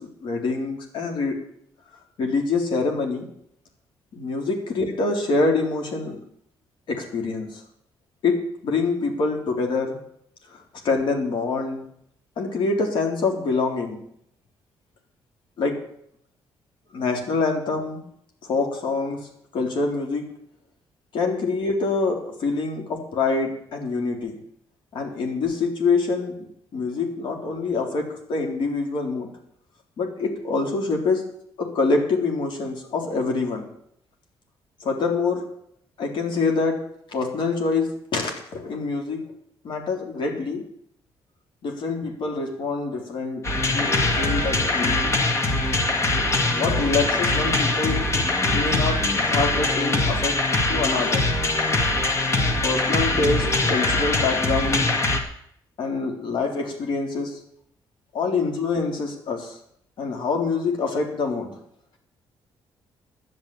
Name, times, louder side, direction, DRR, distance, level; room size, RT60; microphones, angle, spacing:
voice 1, 0.0-1.4 2.2-3.3 4.1-6.2 6.9-7.6 8.2-8.4 8.6-10.0 10.5-10.6 10.8-11.8 12.4-14.0 15.6-15.8 16.9-18.0 18.4-19.2 19.5-20.3 21.1-24.4 24.9-29.3 30.0-31.2 31.6-33.7 34.8-35.4 36.0-36.8 37.1-39.2 39.6-40.6 41.6-43.4 43.7-45.1 46.5-48.1 48.5-50.4 50.7-51.2 52.6-54.9 55.8-57.4 58.1-59.6 60.0-61.6, left 4 dB, 65° left, 2 dB, 3.8 m, -25 dB
sound 1, 43.4-55.2, left 2 dB, 35° left, 2.2 m, -22 dB
12.0 x 9.2 x 8.6 m, 0.71 s
cardioid pair, 105°, 9 cm